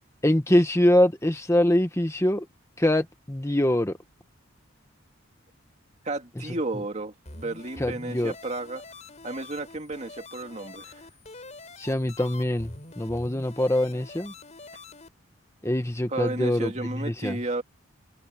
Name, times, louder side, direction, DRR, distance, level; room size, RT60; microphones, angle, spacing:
voice 1, 0.2-2.5 2.8-4.0 7.8-8.3 11.8-14.3 15.6-17.4, left 1 dB, 15° left, 1.2 m, -24 dB
voice 2, 6.0-8.8 9.2-11.0 16.1-17.6, right 2 dB, 35° right, 2.3 m, -33 dB
sound 1, 7.2-15.1, left 3 dB, 35° left, 4.9 m, -45 dB
head